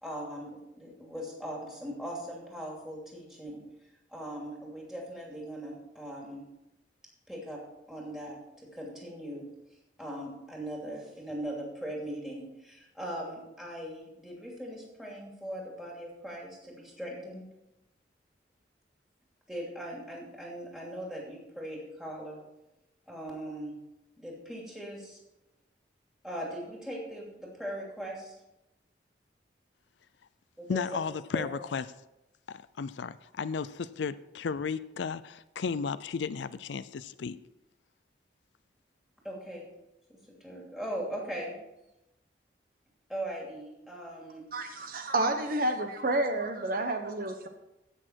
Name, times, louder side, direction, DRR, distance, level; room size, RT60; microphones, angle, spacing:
voice 1, 0.0-3.6 4.1-6.4 7.3-7.6 7.9-9.5 10.0-17.5 19.5-22.4 23.1-23.7 24.2-25.2 26.2-28.4 30.6-30.9 31.3-31.5 39.2-39.7 40.1-41.6 43.1-44.5, right 1 dB, 5° right, 2.8 m, -40 dB
voice 2, 30.7-31.8 32.5-37.4, left 5 dB, 80° left, 0.4 m, -34 dB
voice 3, 44.5-47.5, right 2 dB, 50° right, 1.0 m, -30 dB
15.5 x 6.4 x 4.6 m
head